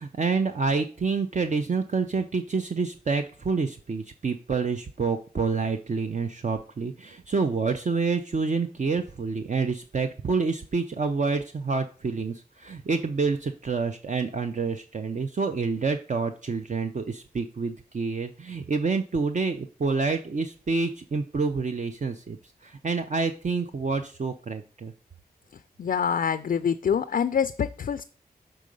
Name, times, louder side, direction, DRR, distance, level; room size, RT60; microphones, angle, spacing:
voice 1, 0.0-22.4 22.6-24.9, right 4 dB, 50° right, 6 dB, 0.6 m, -28 dB
voice 2, 25.8-28.0, left 7 dB, 60° left, 12 dB, 0.4 m, -25 dB
6.3 x 3.8 x 5.3 m, 0.37 s
cardioid pair, 55°, 17 cm